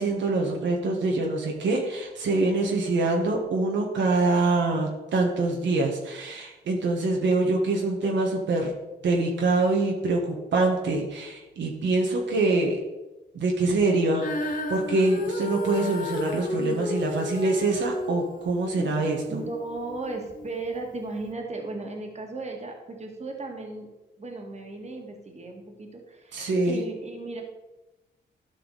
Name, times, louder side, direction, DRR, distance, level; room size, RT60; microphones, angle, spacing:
voice 1, 0.0-8.7 9.0-12.8 13.3-19.4 26.3-26.8, right 2 dB, 80° right, 0 dB, 1.5 m, -25 dB
Female singing, 14.2-20.5 21.2-21.3, left 2 dB, 45° left, 1.1 m, -33 dB
voice 2, 19.3-23.9 24.2-27.4, right 3 dB, 35° right, 2 dB, 1.9 m, -36 dB
12.5 x 5.6 x 4.1 m, 1.0 s
cardioid pair, 95°, 19 cm